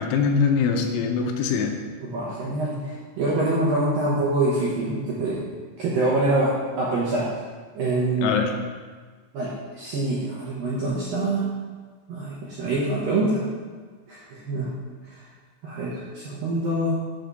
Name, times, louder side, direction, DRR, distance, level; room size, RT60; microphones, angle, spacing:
voice 1, 0.0-1.8 8.2-8.5, left 5 dB, 80° left, 3 dB, 3.2 m, -22 dB
voice 2, 2.0-5.4 5.8-7.3 7.7-8.5 9.3-11.5 12.1-13.4 14.1-14.7 15.0-15.2 15.6-17.0, right 2 dB, 70° right, -7 dB, 2.2 m, -25 dB
8.7 x 4.6 x 6.8 m, 1.5 s
omnidirectional pair, 5.8 m